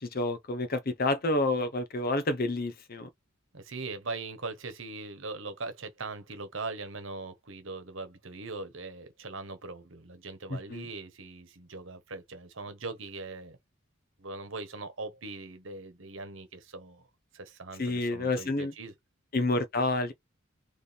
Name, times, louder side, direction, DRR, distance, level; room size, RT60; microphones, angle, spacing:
voice 1, 0.0-3.1 10.5-10.8 17.8-18.7 19.3-20.1, left 2 dB, 50° left, 0.9 m, -29 dB
voice 2, 3.5-13.6 14.2-17.1 17.3-18.9, right 3 dB, 70° right, 1.2 m, -40 dB
3.5 x 3.3 x 4.1 m
head